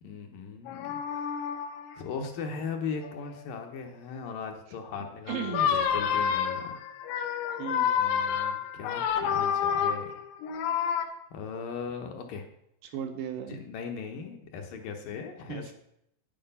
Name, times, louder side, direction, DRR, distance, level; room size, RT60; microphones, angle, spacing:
voice 1, 0.0-1.6 2.0-6.8 8.0-10.1 10.7-10.9 11.3-12.5 13.5-15.7, left 5 dB, 70° left, 3 dB, 2.4 m, -38 dB
sound 1, 0.7-1.9 3.0-3.4 5.3-11.1, left 8 dB, 90° left, 3.2 m, -29 dB
voice 2, 5.3-5.7 7.6-8.0 12.8-13.6 15.5-15.7, right 8 dB, 75° right, 5 dB, 2.3 m, -35 dB
9.8 x 8.9 x 5.5 m, 0.76 s
omnidirectional pair, 4.6 m